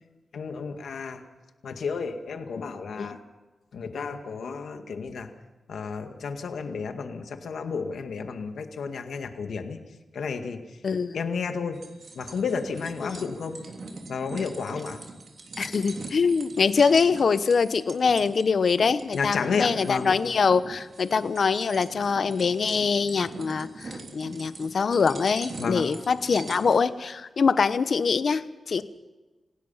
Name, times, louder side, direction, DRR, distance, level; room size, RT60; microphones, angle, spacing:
voice 1, 0.3-1.2 1.6-3.2 3.7-5.3 5.7-9.8 10.1-10.6 11.1-11.8 12.2-13.6 14.1-15.0 19.1-20.1 25.6-25.8, left 5 dB, 90° left, 6 dB, 2.0 m, -31 dB
voice 2, 10.8-11.2 13.0-13.2 15.6-28.8, left 5 dB, 60° left, 13 dB, 0.9 m, -24 dB
sound 1, 11.7-26.8, right 3 dB, 55° right, 3.3 m, -43 dB
27.0 x 17.0 x 5.8 m, 1.2 s
wide cardioid pair, 100°, 0 cm